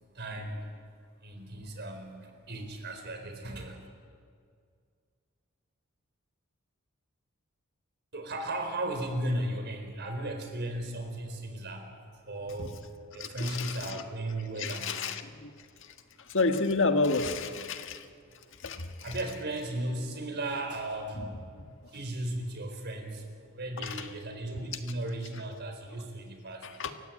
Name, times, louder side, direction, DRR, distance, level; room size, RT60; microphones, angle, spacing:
voice 1, 0.1-0.7 1.2-3.9 8.1-15.0 17.8-21.4 21.8-26.7, right 1 dB, 50° right, 4.3 m, -36 dB
voice 2, 13.2-14.0 14.6-15.5 15.8-15.9 16.2-18.1 18.6-19.1 21.2-21.3 21.5-21.7 23.8-24.1 26.6-26.9, left 3 dB, 60° left, 1.6 m, -31 dB
28.5 x 15.5 x 9.2 m
head